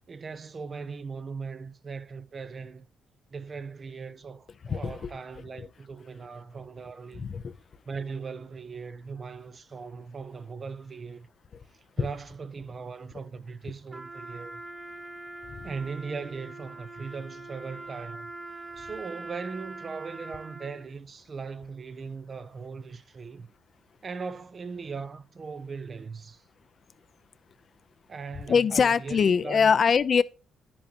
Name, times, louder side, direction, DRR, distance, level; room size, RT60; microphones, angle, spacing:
voice 1, 0.1-2.9 3.3-7.3 7.9-11.3 11.7-14.6 15.6-18.3 18.8-23.5 24.0-26.4 28.1-29.7, right 5 dB, 40° right, 0.8 m, -39 dB
voice 2, 4.7-5.1 5.6-5.7 7.2-7.5 15.5-15.7 28.5-30.2, left 6 dB, 50° left, 0.6 m, -23 dB
Trumpet, 13.9-20.9, right 2 dB, 20° right, 1.7 m, -43 dB
10.5 x 8.6 x 2.9 m
cardioid pair, 90°, 0 cm